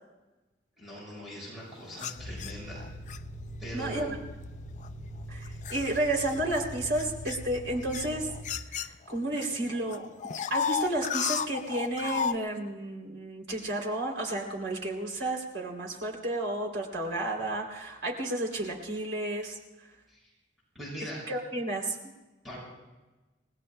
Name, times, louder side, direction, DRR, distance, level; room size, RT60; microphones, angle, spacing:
voice 1, 0.8-2.9 3.6-4.2 20.1-20.2 20.7-21.3 22.4-22.6, equal, ahead, -7 dB, 6.6 m, -41 dB
sound 1, 1.9-3.2 4.0-4.2 4.8-9.4 9.7-12.4, left 7 dB, 40° left, 0.4 m, -34 dB
sound 2, 2.2-8.4, equal, 50° right, 5.6 m, -42 dB
voice 2, 3.7-4.1 5.3-8.3 8.7-10.0 10.5-19.6 21.3-22.0, right 1 dB, 90° right, 0 dB, 3.1 m, -32 dB
29.0 x 19.0 x 2.2 m, 1.1 s
head